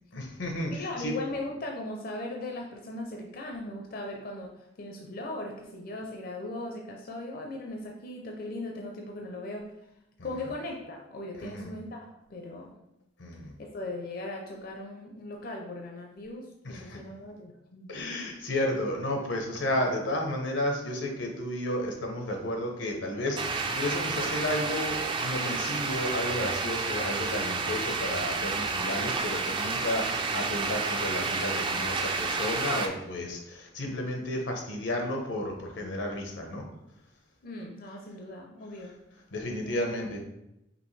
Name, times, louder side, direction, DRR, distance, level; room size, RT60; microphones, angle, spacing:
voice 1, 0.1-1.1 10.2-10.3 11.4-11.7 13.2-13.5 16.6-17.0 17.9-36.6 39.3-40.2, left 1 dB, 90° left, 2 dB, 0.9 m, -32 dB
voice 2, 0.7-4.5 4.8-9.7 10.2-12.7 13.6-17.9 37.4-38.9 39.6-39.9, left 2 dB, 50° left, 1 dB, 0.5 m, -38 dB
sound 1, 23.4-32.9, right 4 dB, 25° right, 0.4 m, -30 dB
5.1 x 2.9 x 3.2 m, 0.87 s
head